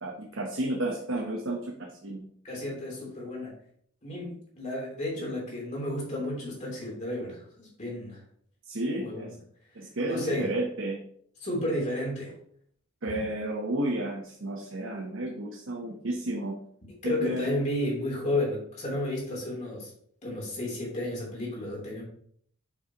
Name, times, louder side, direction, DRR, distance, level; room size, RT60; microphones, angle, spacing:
voice 1, 0.0-2.3 8.7-9.3 9.7-11.0 13.0-16.6 17.0-17.6, right 1 dB, 60° right, 1 dB, 0.9 m, -32 dB
voice 2, 2.4-3.5 4.0-8.2 9.0-9.3 10.0-10.5 11.4-12.4 17.0-19.9 20.2-22.0, left 1 dB, 35° left, -3 dB, 3.3 m, -32 dB
7.3 x 7.1 x 3.0 m, 0.62 s
head